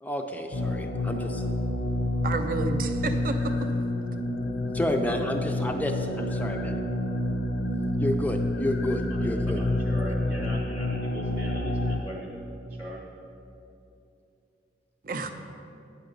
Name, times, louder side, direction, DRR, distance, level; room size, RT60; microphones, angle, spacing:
voice 1, 0.0-1.4 4.7-6.8 8.0-9.6, left 1 dB, 10° left, 4 dB, 0.4 m, -30 dB
sound 1, 0.5-12.0, left 1 dB, 65° left, 0.6 m, -28 dB
voice 2, 2.2-3.5 15.0-15.3, right 3 dB, 50° right, 7 dB, 0.5 m, -30 dB
voice 3, 9.1-12.4 12.7-13.0, equal, 10° right, -6 dB, 0.8 m, -40 dB
9.3 x 5.8 x 5.2 m, 2.7 s
head